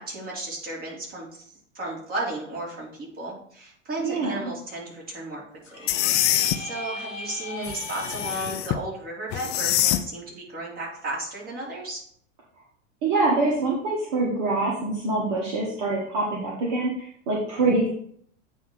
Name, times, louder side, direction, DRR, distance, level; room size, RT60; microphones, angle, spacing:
voice 1, 0.0-1.4 1.7-5.4 5.7-6.0 6.2-12.0, right 2 dB, 25° right, -4 dB, 3.1 m, -34 dB
voice 2, 4.0-4.5 13.0-17.9, right 2 dB, 45° right, -4 dB, 1.8 m, -25 dB
sound 1, 5.6-8.5, left 3 dB, 90° left, 1.2 m, -38 dB
sound 2, 5.9-6.6 7.6-8.8 9.3-10.0, left 13 dB, 30° left, 0.4 m, -24 dB
8.9 x 3.1 x 5.4 m, 0.63 s
figure-of-eight pair, 90°, 37 cm